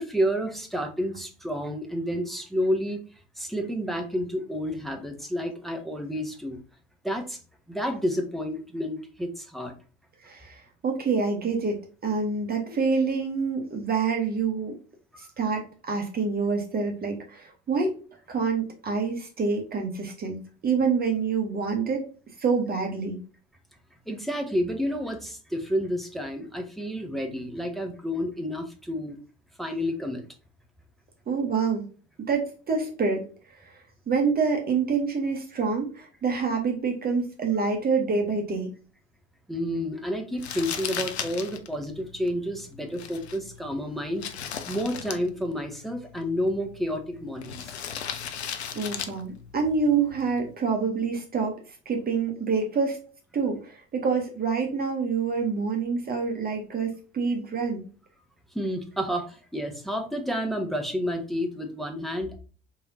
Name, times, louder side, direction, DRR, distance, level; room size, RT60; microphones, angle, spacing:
voice 1, 0.0-3.0 3.4-6.6 7.0-7.4 7.7-9.7 24.1-29.2 29.6-30.2 39.5-44.2 44.7-47.7 58.5-62.4, equal, ahead, 3 dB, 0.8 m, -30 dB
voice 2, 10.2-14.7 15.2-17.9 18.3-22.1 22.4-23.2 31.3-31.8 32.3-33.3 33.6-33.8 34.1-38.7 48.7-51.6 51.9-53.0 53.3-57.8, right 5 dB, 30° right, 2 dB, 1.0 m, -27 dB
Crumpling crinkling, 40.4-50.5, left 8 dB, 80° left, 0.5 m, -38 dB
4.7 x 3.3 x 2.7 m, 0.37 s
figure-of-eight pair, 60°, 33 cm